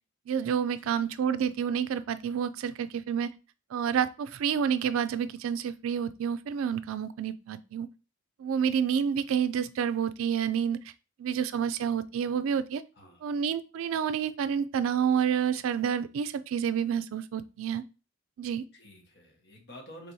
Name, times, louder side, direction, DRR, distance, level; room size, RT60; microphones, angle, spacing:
voice 1, 0.3-3.3 3.7-7.9 8.4-10.8 11.2-12.8 13.2-17.8 18.4-18.6, right 8 dB, 80° right, 12 dB, 0.3 m, -29 dB
voice 2, 12.9-13.3 18.7-20.1, equal, 55° left, 1 dB, 1.3 m, -50 dB
4.5 x 3.3 x 2.7 m, 0.31 s
head